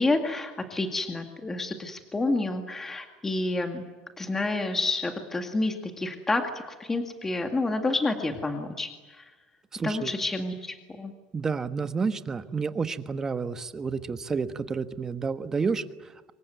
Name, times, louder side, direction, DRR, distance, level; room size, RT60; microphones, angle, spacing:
voice 1, 0.0-3.8 4.2-6.4 6.8-9.3 9.8-11.1, left 2 dB, 10° left, 5 dB, 2.1 m, -29 dB
voice 2, 9.7-10.1 11.3-16.3, right 5 dB, 15° right, 10 dB, 1.3 m, -30 dB
25.5 x 23.5 x 9.2 m, 1.3 s
cardioid pair, 155°, 3 cm